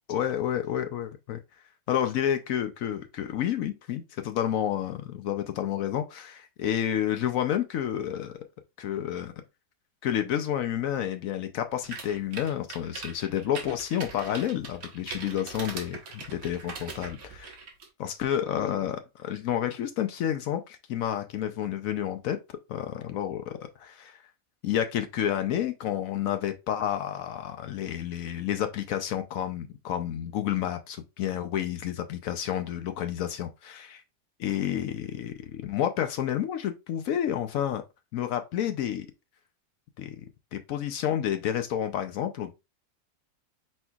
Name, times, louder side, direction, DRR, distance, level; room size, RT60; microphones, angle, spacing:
voice 1, 0.1-1.4 1.9-8.3 8.8-9.3 10.0-17.5 18.0-22.4 22.7-24.2 24.6-34.0 34.4-37.8 38.1-39.1 40.0-40.2 40.5-42.5, left 10 dB, 70° left, 0.8 m, -30 dB
sound 1, 11.8-17.9, right 4 dB, 60° right, 1.4 m, -41 dB
4.4 x 4.3 x 2.3 m
omnidirectional pair, 1.9 m